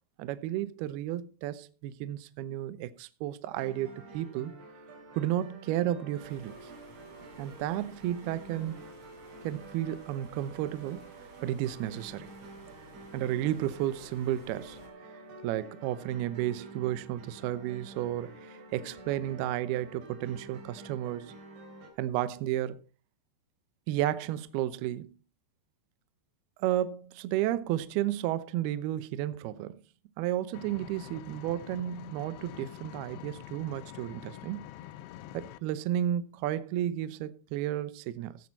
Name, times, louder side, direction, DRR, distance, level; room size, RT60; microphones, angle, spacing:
voice 1, 0.2-4.5 5.2-6.7 7.4-8.7 9.4-11.0 11.4-12.3 13.1-14.8 15.4-21.3 22.0-22.8 23.9-25.2 26.6-29.8 30.2-34.6 35.3-38.4, right 12 dB, 90° right, 2.2 m, -32 dB
sound 1, 3.5-21.9, right 2 dB, 70° right, 5.4 m, -49 dB
sound 2, 6.2-14.9, equal, 40° right, 4.5 m, -54 dB
Engine, 30.5-35.6, left 13 dB, 85° left, 2.5 m, -46 dB
16.0 x 8.6 x 4.1 m
omnidirectional pair, 5.6 m